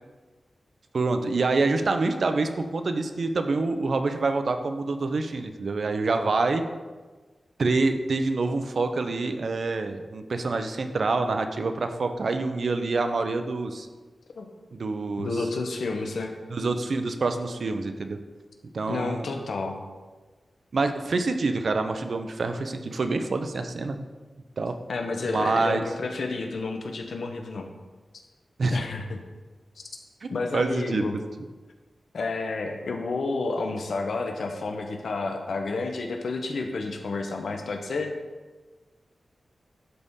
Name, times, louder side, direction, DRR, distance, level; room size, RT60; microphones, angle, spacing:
voice 1, 0.9-6.6 7.6-13.9 14.7-15.3 16.5-18.2 18.7-19.3 20.7-24.0 24.6-24.7 25.3-25.8 28.6-28.8 30.5-31.1, right 3 dB, 60° right, 7 dB, 0.6 m, -26 dB
voice 2, 15.2-16.3 18.9-19.8 24.9-27.7 28.7-29.2 30.3-31.2 32.1-38.1, left 3 dB, 80° left, 4 dB, 0.8 m, -30 dB
12.0 x 4.1 x 3.7 m, 1.3 s
wide cardioid pair, 135°, 0 cm